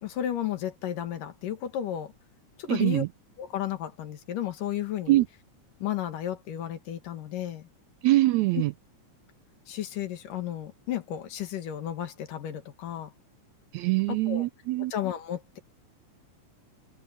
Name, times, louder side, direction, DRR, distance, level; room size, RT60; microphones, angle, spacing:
voice 1, 0.0-2.1 2.6-3.0 3.4-5.2 5.8-7.7 8.5-8.6 9.7-13.1 14.1-14.5 14.9-15.6, left 11 dB, 85° left, 3.4 m, -33 dB
voice 2, 2.7-3.1 5.1-5.3 8.0-8.7 13.7-14.9, right 18 dB, 80° right, 1.7 m, -23 dB
open air
omnidirectional pair, 3.7 m